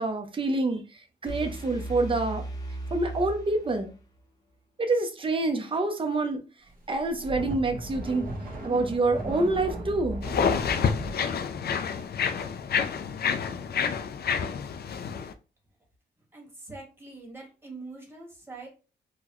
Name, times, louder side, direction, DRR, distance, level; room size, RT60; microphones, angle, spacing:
voice 1, 0.0-2.4 2.9-3.9 4.8-6.4 6.9-8.3 8.6-10.2, right 2 dB, 30° right, 0.6 m, -27 dB
sound 1, 1.3-4.2, right 2 dB, 20° left, 0.7 m, -37 dB
sound 2, 6.9-11.2, right 1 dB, 50° right, 1.2 m, -36 dB
sound 3, 10.2-15.3, left 6 dB, 60° left, 0.4 m, -28 dB
voice 2, 16.2-18.7, right 3 dB, 10° right, 1.5 m, -44 dB
3.8 x 2.1 x 3.0 m
wide cardioid pair, 115°, 19 cm